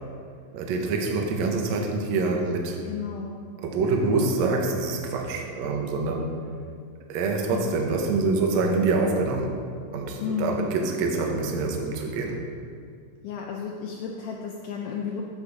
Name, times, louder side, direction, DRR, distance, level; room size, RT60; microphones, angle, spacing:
voice 1, 0.5-2.8 3.6-6.3 7.1-9.5 9.9-12.4, right 3 dB, 80° right, 2 dB, 1.6 m, -25 dB
voice 2, 2.8-3.3 4.1-4.4 7.5-7.8 10.2-10.7 13.2-15.2, left 7 dB, 85° left, 0 dB, 1.8 m, -33 dB
8.3 x 4.4 x 5.9 m, 2.2 s
omnidirectional pair, 4.2 m